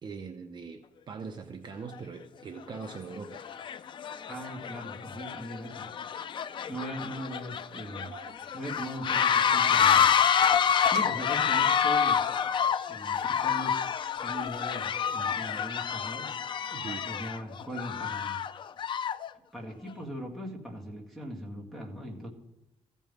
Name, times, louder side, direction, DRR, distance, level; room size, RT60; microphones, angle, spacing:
voice 1, 0.0-3.4 16.7-17.1, right 5 dB, 40° right, 5 dB, 0.7 m, -41 dB
sound 1, 1.9-2.0 2.7-3.0 3.3-19.3, left 8 dB, 45° left, 0.4 m, -28 dB
voice 2, 4.2-5.9 6.7-8.1 8.5-10.1 10.8-12.4 12.9-13.9 14.2-16.3 17.1-18.4 19.5-22.3, equal, ahead, -2 dB, 2.1 m, -40 dB
sound 2, 7.7-9.5 9.9-12.5 13.0-14.7, right 5 dB, 75° right, 2.2 m, -51 dB
15.0 x 5.4 x 9.7 m, 0.91 s
wide cardioid pair, 160°, 11 cm